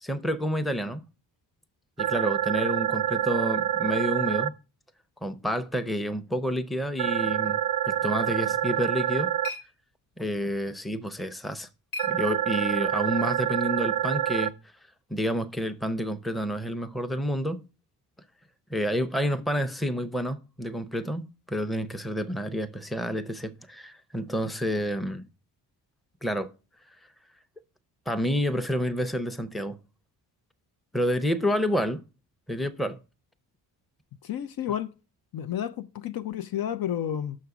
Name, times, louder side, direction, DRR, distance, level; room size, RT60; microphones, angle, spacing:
voice 1, 0.0-1.0 2.0-4.5 5.2-7.6 7.9-9.3 10.2-11.7 12.0-14.5 15.1-17.6 18.7-25.2 26.2-26.5 28.1-29.8 30.9-32.0 32.5-33.0, equal, ahead, 0.7 m, -29 dB
sound 1, 2.0-4.5 7.0-9.5 12.0-14.5, right 11 dB, 45° right, 0.5 m, -27 dB
sound 2, 8.7-12.9, left 2 dB, 75° left, 1.6 m, -44 dB
voice 2, 34.2-34.9 35.3-37.4, left 10 dB, 55° left, 0.6 m, -31 dB
6.3 x 5.6 x 4.8 m
supercardioid pair, 60°, 43 cm